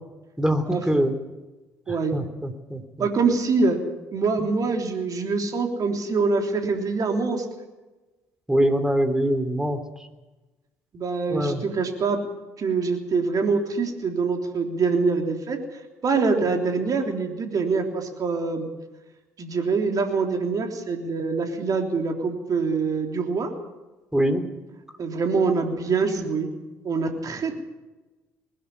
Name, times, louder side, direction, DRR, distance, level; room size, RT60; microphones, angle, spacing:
voice 1, 0.4-1.1 2.1-3.1 8.5-9.8 11.3-11.6 24.1-24.4, equal, 5° right, 8 dB, 3.2 m, -23 dB
voice 2, 3.0-3.8 4.1-7.5 10.9-12.2 12.6-18.7 19.4-23.5 25.0-26.5 26.8-27.5, right 4 dB, 45° right, 4 dB, 3.4 m, -24 dB
20.5 x 13.0 x 9.9 m, 1.1 s
hypercardioid pair, 50°, 8 cm